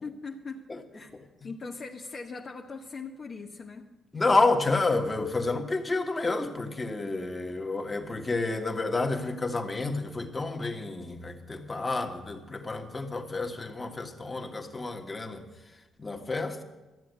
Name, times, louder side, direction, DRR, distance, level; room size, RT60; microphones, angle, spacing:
voice 1, 0.0-0.7 0.9-1.1 1.4-3.9, left 4 dB, 45° left, 1 dB, 1.1 m, -40 dB
voice 2, 4.1-15.4 16.0-16.6, left 3 dB, 20° left, 3 dB, 1.6 m, -29 dB
13.5 x 7.7 x 9.5 m, 1.2 s
cardioid pair, 90°, 0 cm